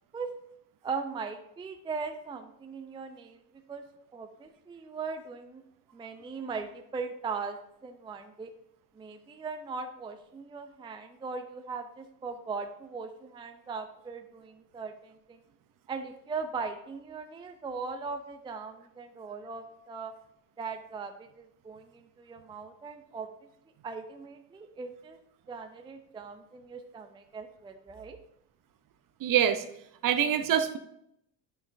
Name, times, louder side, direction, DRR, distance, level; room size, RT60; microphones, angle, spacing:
voice 1, 0.8-3.4 3.7-3.8 4.1-5.6 5.9-8.5 8.9-15.4 15.9-20.1 20.6-23.5 23.8-25.2 25.5-28.2, right 4 dB, 10° right, 7 dB, 0.5 m, -39 dB
voice 2, 29.2-29.6 30.0-30.8, right 9 dB, 45° right, 10 dB, 0.8 m, -25 dB
8.6 x 6.2 x 2.6 m, 0.77 s
hypercardioid pair, 70°, 49 cm